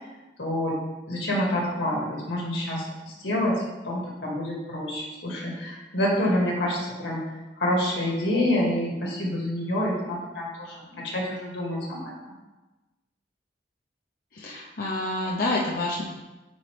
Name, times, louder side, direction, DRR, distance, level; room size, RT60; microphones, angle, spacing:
voice 1, 0.4-0.8 1.1-7.2 7.6-12.3, left 1 dB, 75° left, -3 dB, 2.0 m, -27 dB
voice 2, 14.3-16.0, left 2 dB, 55° left, -3 dB, 0.7 m, -28 dB
9.2 x 4.3 x 3.4 m, 1.1 s
head